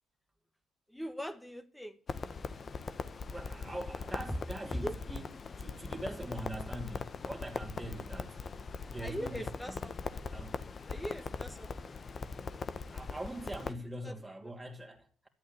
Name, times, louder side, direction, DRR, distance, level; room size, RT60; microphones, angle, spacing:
voice 1, 0.9-2.0 4.6-5.0 9.0-10.2 10.9-12.0 14.0-14.2 14.4-14.5, equal, 5° left, 1.6 m, -41 dB
Crackle, 2.1-13.7, left 4 dB, 40° left, 1.2 m, -41 dB
voice 2, 3.3-5.3 5.6-8.5 8.9-9.8 10.3-10.6 12.9-15.3, right 1 dB, 10° right, 2.9 m, -43 dB
13.0 x 8.4 x 8.4 m
supercardioid pair, 70°, 0 cm